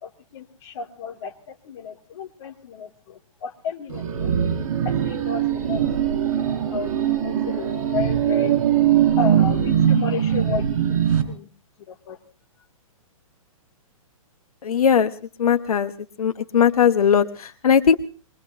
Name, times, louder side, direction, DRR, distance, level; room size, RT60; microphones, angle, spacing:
voice 1, 0.0-4.3 4.8-7.7 7.9-8.5 9.2-10.8 11.3-11.5 11.9-12.2, left 6 dB, 45° left, 4 dB, 2.7 m, -33 dB
sound 1, 3.9-11.2, right 10 dB, 65° right, 4.6 m, -21 dB
voice 2, 14.6-15.1 15.4-15.9 16.2-18.0, left 7 dB, 85° left, 10 dB, 1.2 m, -18 dB
22.5 x 22.5 x 2.8 m, 0.36 s
hypercardioid pair, 150°, 18 cm